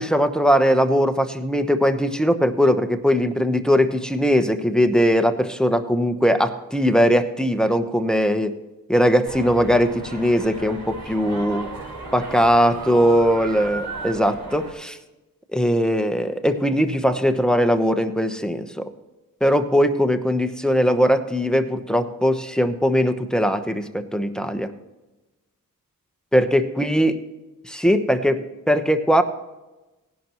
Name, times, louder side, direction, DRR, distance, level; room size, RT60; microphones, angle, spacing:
voice 1, 0.0-8.5 8.9-11.7 12.1-15.0 15.5-18.9 19.4-24.7 26.3-27.1 27.6-29.2, equal, ahead, 7 dB, 1.0 m, -20 dB
sound 1, 9.2-14.7, right 3 dB, 85° right, 5.0 m, -35 dB
18.0 x 11.0 x 3.1 m, 1.1 s
wide cardioid pair, 70°, 34 cm